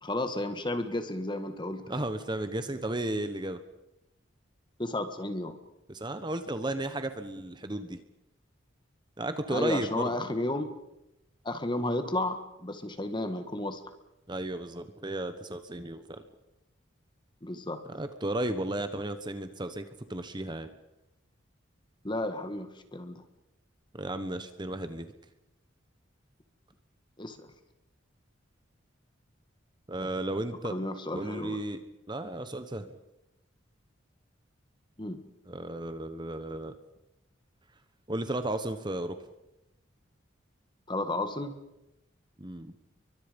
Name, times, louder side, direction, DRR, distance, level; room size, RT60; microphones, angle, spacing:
voice 1, 0.0-2.0 4.8-5.6 9.5-10.7 11.4-13.8 17.4-17.8 22.0-23.2 27.2-27.4 30.7-31.6 35.0-35.2 40.9-41.5, left 1 dB, 25° left, 9 dB, 1.9 m, -32 dB
voice 2, 1.9-3.6 5.9-8.0 9.2-10.1 14.3-16.2 17.9-20.7 23.9-25.1 29.9-30.8 31.1-31.8 32.1-32.9 35.5-36.7 38.1-39.2 42.4-42.7, right 1 dB, 25° right, 10 dB, 1.2 m, -34 dB
30.0 x 23.5 x 5.4 m, 0.90 s
head